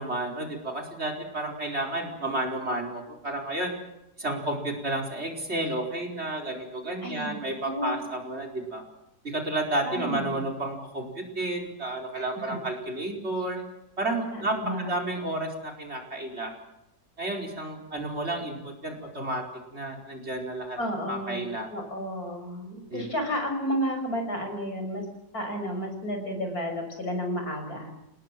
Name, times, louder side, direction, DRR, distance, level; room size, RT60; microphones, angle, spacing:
voice 1, 0.0-3.7 4.2-8.8 9.2-13.6 14.0-16.5 17.2-19.4 19.7-20.8 21.1-21.7 22.9-23.0, right 1 dB, 35° right, 3 dB, 5.0 m, -31 dB
voice 2, 7.0-8.0 9.8-10.5 12.1-12.6 14.3-14.9 20.8-21.4 21.7-25.0 25.3-27.9, equal, 55° left, 5 dB, 6.7 m, -32 dB
28.0 x 19.5 x 7.6 m, 0.85 s
omnidirectional pair, 1.9 m